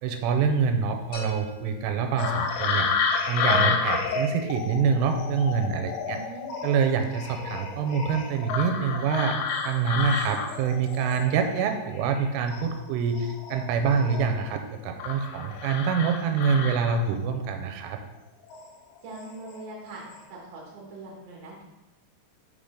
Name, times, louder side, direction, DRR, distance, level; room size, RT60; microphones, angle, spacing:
voice 1, 0.0-2.9 3.3-6.2 6.6-9.4 9.6-18.0, right 6 dB, 90° right, 6 dB, 3.2 m, -26 dB
sound 1, 1.1-3.0, equal, 70° left, 3.8 m, -43 dB
sound 2, 2.2-12.2 12.5-14.5 15.0-17.3 18.4-18.7 19.1-19.6 19.9-20.2, left 5 dB, 90° left, 3.2 m, -30 dB
voice 2, 6.0-6.5 19.0-20.0 20.3-21.7, right 2 dB, 60° right, -3 dB, 1.7 m, -42 dB
6.6 x 5.8 x 3.7 m, 1.0 s
omnidirectional pair, 5.5 m